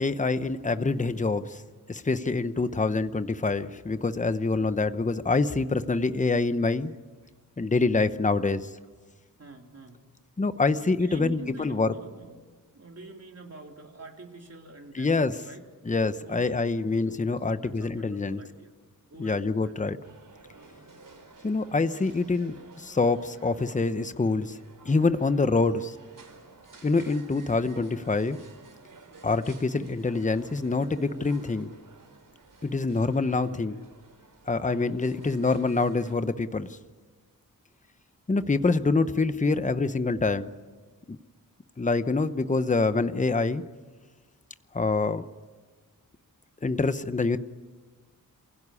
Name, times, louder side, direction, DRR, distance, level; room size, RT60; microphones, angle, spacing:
voice 1, 0.0-1.6 1.9-6.9 7.6-8.7 10.4-11.9 15.0-15.3 15.9-18.4 19.2-20.0 21.4-24.6 24.8-25.9 26.8-28.4 29.2-31.7 32.6-33.8 34.5-36.7 38.3-40.5 41.1-41.2 41.8-43.6 44.7-45.3 46.6-47.4, left 3 dB, 20° left, 12 dB, 0.9 m, -26 dB
voice 2, 2.6-2.9 4.5-4.8 7.2-7.3 9.4-10.0 11.0-12.4 12.7-15.6 16.2-18.7 19.1-19.7, right 2 dB, 45° right, 1 dB, 3.6 m, -45 dB
sound 1, 20.0-36.2, right 3 dB, 60° right, 4.2 m, -52 dB
28.5 x 16.0 x 9.8 m, 1.4 s
wide cardioid pair, 125°, 35 cm